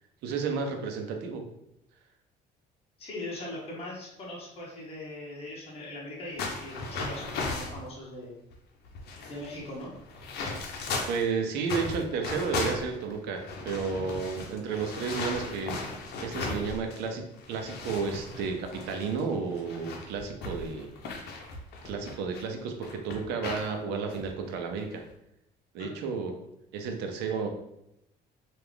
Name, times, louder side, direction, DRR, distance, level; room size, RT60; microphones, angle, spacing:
voice 1, 0.2-1.4 11.1-15.8 16.2-20.9 21.8-25.0 25.7-26.3 26.7-27.5, right 5 dB, 85° right, 4 dB, 0.6 m, -32 dB
voice 2, 3.0-8.3 9.3-9.9 25.8-26.0, left 1 dB, 35° left, -5 dB, 1.1 m, -40 dB
sound 1, 6.4-7.8 8.5-8.6 8.8-11.3 11.6-17.1 17.4-22.4 22.8-23.7 24.1-24.3 24.8-25.1, left 3 dB, 70° left, 0.7 m, -36 dB
3.4 x 2.4 x 3.5 m, 0.81 s
cardioid pair, 110°, 17 cm